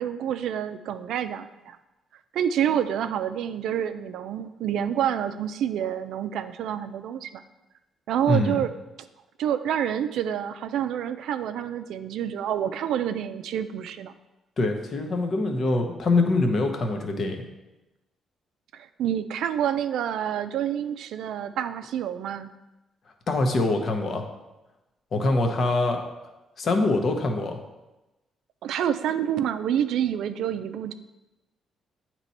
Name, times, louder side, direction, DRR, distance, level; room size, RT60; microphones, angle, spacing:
voice 1, 0.0-1.8 2.3-7.4 8.1-8.7 9.4-14.2 18.7-22.5 28.6-30.9, right 9 dB, 80° right, 10 dB, 0.4 m, -28 dB
voice 2, 8.3-8.6 14.6-17.4 23.3-24.2 25.1-26.0 26.6-27.6, left 2 dB, 50° left, 4 dB, 0.9 m, -24 dB
8.8 x 3.0 x 4.1 m, 1.0 s
cardioid pair, 90°, 0 cm